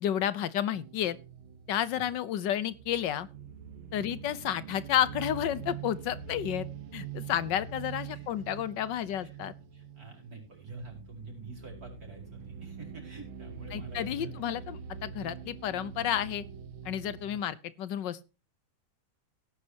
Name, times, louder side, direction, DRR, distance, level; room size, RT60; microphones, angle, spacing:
voice 1, 0.0-1.2 1.7-3.3 3.9-6.7 6.9-9.5 13.7-16.4 16.8-18.3, left 10 dB, 65° left, 17 dB, 1.5 m, -31 dB
sound 1, 0.7-17.4, right 7 dB, 90° right, 1.9 m, -44 dB
voice 2, 8.1-8.6 9.2-9.3 9.7-14.5, right 3 dB, 45° right, 0 dB, 5.6 m, -47 dB
17.5 x 10.0 x 2.9 m, 0.29 s
omnidirectional pair, 2.2 m